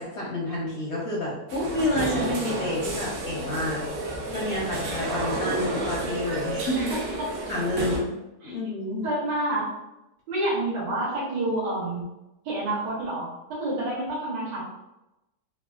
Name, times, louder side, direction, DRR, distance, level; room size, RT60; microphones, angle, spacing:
voice 1, 0.0-3.8 4.3-6.9 7.5-8.1 8.4-9.0, left 1 dB, 65° left, -5 dB, 0.7 m, -29 dB
sound 1, 1.5-8.0, right 1 dB, 70° right, 0.7 m, -31 dB
voice 2, 6.7-7.3 8.4-8.6 9.0-9.7 10.3-12.1 12.5-14.6, right 1 dB, 90° right, -5 dB, 1.7 m, -28 dB
3.4 x 2.4 x 2.3 m, 0.94 s
omnidirectional pair, 1.8 m